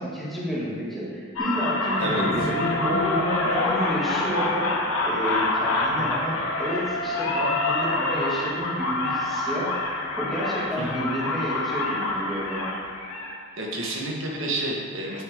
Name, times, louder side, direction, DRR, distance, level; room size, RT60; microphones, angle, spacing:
voice 1, 0.0-4.7 5.0-9.7 10.2-12.7, equal, ahead, -8 dB, 2.0 m, -31 dB
sound 1, 1.4-13.3, left 2 dB, 85° left, 1.6 m, -26 dB
voice 2, 13.6-15.2, right 1 dB, 65° right, -3 dB, 1.5 m, -29 dB
9.5 x 9.3 x 3.6 m, 2.3 s
head